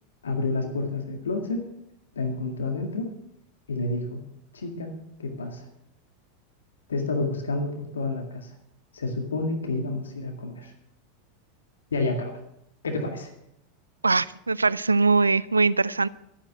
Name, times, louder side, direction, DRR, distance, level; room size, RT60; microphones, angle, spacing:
voice 1, 0.2-1.6 2.1-3.1 3.7-4.2 4.5-4.9 5.2-5.7 6.9-8.5 8.9-10.7 11.9-12.4 12.8-13.3, left 3 dB, 80° left, 4 dB, 1.9 m, -29 dB
voice 2, 14.0-16.1, right 4 dB, 90° right, 20 dB, 0.4 m, -21 dB
12.5 x 8.9 x 7.4 m, 0.77 s
figure-of-eight pair, 90°, 0 cm